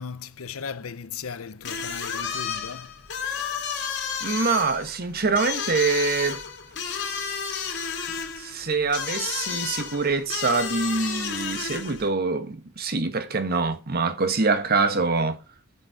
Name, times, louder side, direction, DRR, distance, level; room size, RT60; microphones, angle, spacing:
voice 1, 0.0-2.9, left 6 dB, 80° left, 0.7 m, -37 dB
sound 1, 1.6-12.1, left 6 dB, 55° left, 2.4 m, -32 dB
voice 2, 4.2-6.4 8.4-15.4, right 4 dB, 50° right, 1.2 m, -25 dB
10.0 x 7.4 x 4.7 m
head